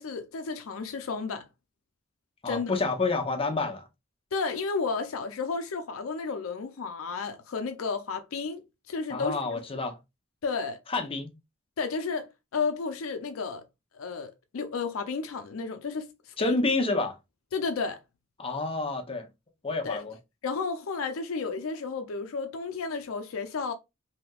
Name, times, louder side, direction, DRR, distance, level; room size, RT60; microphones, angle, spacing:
voice 1, 0.0-1.5 2.4-2.7 4.3-9.6 10.4-10.8 11.8-13.6 13.9-16.6 17.5-18.0 19.8-20.0 20.4-23.7, left 4 dB, 85° left, 0.5 m, -32 dB
voice 2, 2.4-3.9 9.1-10.0 10.9-11.3 16.4-17.2 18.4-19.3 19.6-20.2, left 3 dB, 25° left, 0.6 m, -28 dB
3.3 x 2.7 x 2.2 m
head